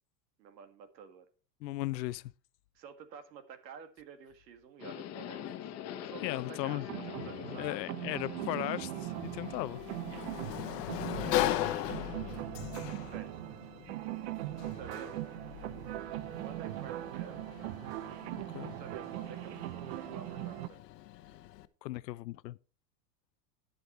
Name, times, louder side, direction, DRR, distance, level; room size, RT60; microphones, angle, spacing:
voice 1, 0.4-1.3 2.7-5.7 6.0-7.9 11.4-11.7 13.0-13.5 14.7-15.2 16.4-17.4 18.6-20.8, right 6 dB, 90° right, 2.1 m, -50 dB
voice 2, 1.6-2.3 6.2-6.9 7.6-9.8 18.5-18.7 21.8-22.6, left 17 dB, 90° left, 0.6 m, -36 dB
Subway metro underground, 4.8-12.4, left 10 dB, 30° left, 1.2 m, -45 dB
sound 1, 6.8-20.7, right 17 dB, 45° right, 0.5 m, -40 dB
Sliding door, 9.0-21.7, left 15 dB, 75° left, 1.0 m, -39 dB
10.5 x 8.1 x 4.3 m
supercardioid pair, 145°, 49 cm